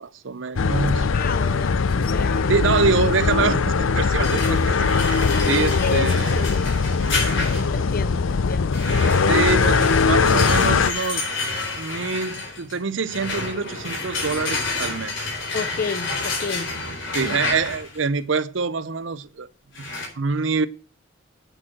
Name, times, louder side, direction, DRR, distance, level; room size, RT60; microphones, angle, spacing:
voice 1, 0.0-1.1 2.5-6.5 9.3-11.3 11.8-15.2 17.1-19.5 20.2-20.7, right 5 dB, 70° right, 0.7 m, -25 dB
sound 1, 0.6-10.9, left 4 dB, 90° left, 0.6 m, -20 dB
voice 2, 0.8-2.5 5.8-6.4 7.7-8.7 15.5-16.7 17.2-17.4, left 4 dB, 45° left, 0.7 m, -31 dB
sound 2, 4.2-7.9 8.7-18.0 19.8-20.1, left 3 dB, 70° left, 4.2 m, -29 dB
8.9 x 6.2 x 7.6 m
head